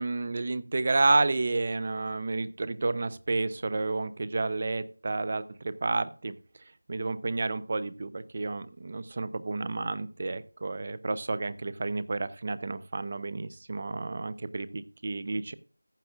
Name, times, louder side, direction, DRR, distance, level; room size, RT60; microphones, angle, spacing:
voice 1, 0.0-6.3 6.9-15.5, right 3 dB, 30° right, 15 dB, 0.7 m, -30 dB
14.5 x 9.6 x 2.4 m, 0.37 s
figure-of-eight pair, 170°, 0 cm